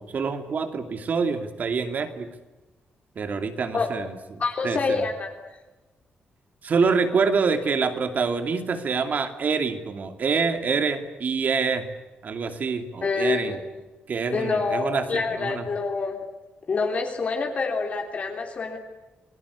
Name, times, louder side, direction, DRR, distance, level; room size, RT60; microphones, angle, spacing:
voice 1, 0.0-2.3 3.2-5.0 6.6-11.9 12.2-13.6 14.1-15.6, right 5 dB, 45° right, 8 dB, 2.7 m, -26 dB
voice 2, 4.4-5.3 13.0-13.6 14.3-16.2 16.7-18.8, left 4 dB, 35° left, 2 dB, 3.3 m, -26 dB
28.5 x 20.0 x 8.4 m, 1.1 s
wide cardioid pair, 160°, 4 cm